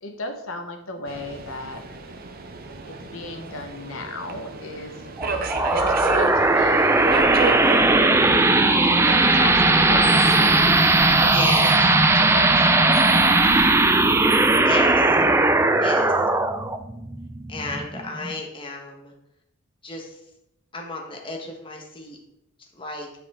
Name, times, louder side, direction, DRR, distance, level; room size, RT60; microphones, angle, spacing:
voice 1, 0.0-1.8 2.9-5.0 5.6-7.3 8.3-10.9 11.1-13.7, left 2 dB, 70° left, 4 dB, 1.1 m, -35 dB
Subway metro underground, 1.1-13.7, right 4 dB, 45° right, 0.6 m, -34 dB
sound 1, 5.2-18.3, right 2 dB, 10° right, 0.3 m, -18 dB
voice 2, 11.3-11.6 14.6-15.2 15.8-16.2 17.5-19.1 19.8-20.2 20.7-22.2 22.7-23.1, left 2 dB, 25° left, 1 dB, 1.2 m, -32 dB
8.7 x 4.9 x 3.6 m, 0.84 s
head